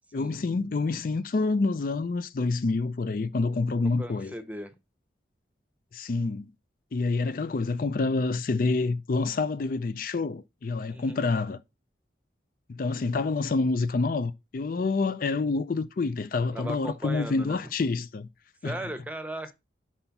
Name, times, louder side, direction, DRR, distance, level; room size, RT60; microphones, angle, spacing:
voice 1, 0.1-4.3 5.9-6.5 6.9-11.6 12.7-18.3 18.6-18.8, left 3 dB, 50° left, 0.4 m, -27 dB
voice 2, 3.8-4.7 10.9-11.2 16.5-17.6 18.6-19.5, right 1 dB, 10° right, 0.9 m, -37 dB
5.6 x 4.4 x 5.7 m
head